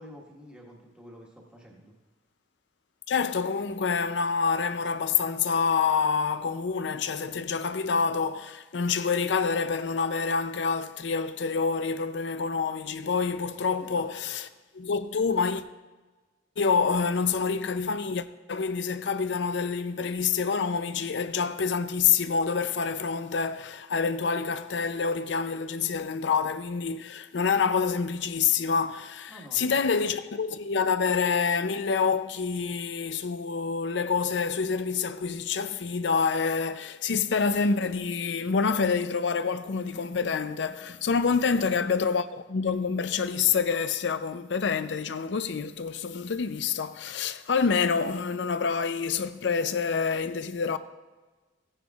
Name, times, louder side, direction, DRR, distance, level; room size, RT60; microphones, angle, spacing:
voice 1, 0.0-1.9 13.8-14.1 29.3-29.8 41.5-41.8, equal, 5° right, 1.4 m, -48 dB
voice 2, 3.1-14.5 14.7-15.6 16.6-50.8, left 5 dB, 65° left, 0.5 m, -27 dB
15.5 x 9.9 x 2.4 m
head